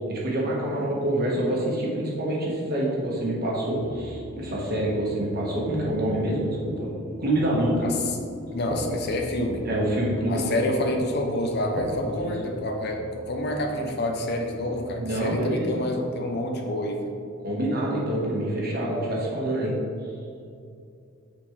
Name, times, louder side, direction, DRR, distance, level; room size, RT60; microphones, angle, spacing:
voice 1, 0.1-6.9 7.2-7.9 9.6-10.7 12.0-12.3 15.0-15.8 17.4-19.7, right 1 dB, 45° right, -4 dB, 1.5 m, -26 dB
sound 1, 3.7-15.0, equal, 70° right, 1.1 m, -41 dB
sound 2, 7.2-12.2, left 1 dB, 25° right, 1.0 m, -39 dB
voice 2, 7.8-8.2 8.5-9.6 10.3-17.0, left 1 dB, 50° left, 2 dB, 0.7 m, -28 dB
8.8 x 4.3 x 3.3 m, 2.5 s
head